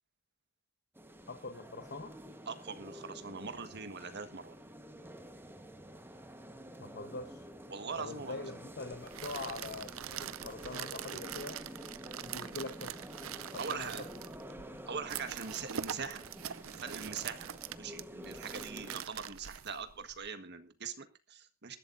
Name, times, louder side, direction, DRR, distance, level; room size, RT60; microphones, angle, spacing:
sound 1, 1.0-19.0, equal, 10° right, 1.3 m, -49 dB
voice 1, 1.3-2.1 6.8-7.4 8.0-11.6 12.2-12.9 13.4-13.9, left 3 dB, 55° left, 6 dB, 1.1 m, -43 dB
voice 2, 2.5-4.5 7.7-8.5 13.6-14.0 14.9-16.2 16.8-17.5 17.8-21.8, right 5 dB, 55° right, 9 dB, 1.5 m, -42 dB
sound 2, 8.9-20.3, right 9 dB, 75° right, 0.6 m, -44 dB
22.5 x 12.0 x 2.6 m, 0.28 s
head